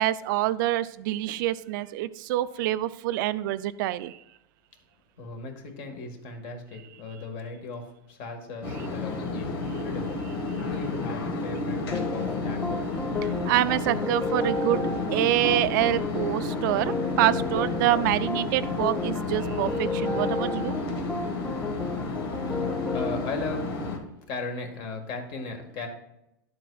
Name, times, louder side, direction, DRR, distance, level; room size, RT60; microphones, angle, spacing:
voice 1, 0.0-4.2 13.2-20.7, right 15 dB, 60° right, 14 dB, 0.4 m, -26 dB
voice 2, 5.2-12.8 22.9-23.8 24.3-25.9, left 3 dB, 45° left, 4 dB, 1.7 m, -37 dB
sound 1, 8.6-24.0, left 3 dB, 90° left, 1.6 m, -31 dB
sound 2, 11.9-23.2, left 3 dB, 10° left, 0.6 m, -33 dB
11.0 x 7.5 x 2.3 m, 0.86 s
supercardioid pair, 145°, 12 cm